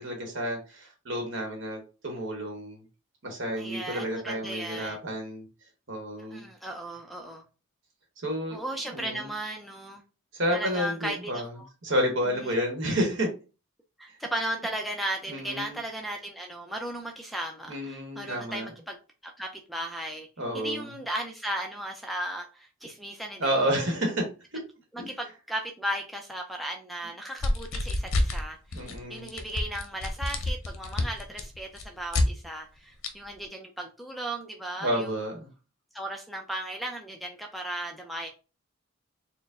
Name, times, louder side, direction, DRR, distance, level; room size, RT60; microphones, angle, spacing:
voice 1, 0.0-2.8 3.2-5.5 5.9-6.5 8.2-8.6 8.9-9.3 10.3-11.5 11.8-13.3 15.3-15.8 17.7-18.7 20.4-20.9 23.4-24.6 25.0-25.1 28.7-29.3 34.8-35.5, equal, 60° right, 1.0 m, -30 dB
voice 2, 3.6-5.0 6.2-7.4 8.5-10.0 10.5-11.7 12.4-12.6 14.0-19.0 19.2-20.3 20.5-23.7 24.9-35.1 35.9-38.3, right 1 dB, ahead, 0.4 m, -36 dB
sound 1, 27.4-28.4 28.7-29.0 29.3-32.3 33.0-33.1, left 2 dB, 80° left, 0.7 m, -28 dB
4.4 x 2.1 x 3.5 m
head